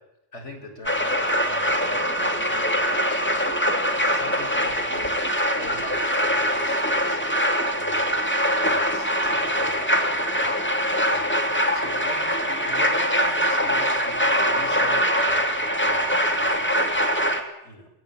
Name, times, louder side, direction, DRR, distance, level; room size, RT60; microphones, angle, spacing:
voice 1, 0.3-17.9, left 2 dB, 80° left, 2 dB, 6.7 m, -42 dB
sound 1, 0.8-17.4, equal, 10° left, 2.5 m, -23 dB
22.5 x 18.5 x 8.9 m, 0.85 s
omnidirectional pair, 1.2 m